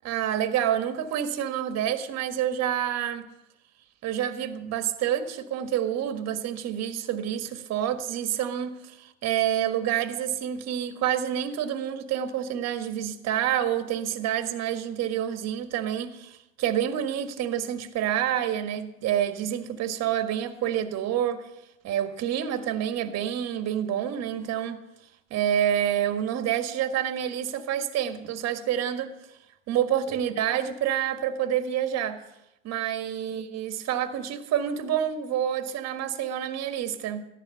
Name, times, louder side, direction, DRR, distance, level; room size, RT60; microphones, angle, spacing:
voice 1, 0.0-3.3 4.0-21.5 21.8-24.8 25.3-29.1 29.7-32.2 32.6-37.3, right 10 dB, 40° right, 1.5 m, -28 dB
15.0 x 10.5 x 5.6 m
hypercardioid pair, 105°, 40 cm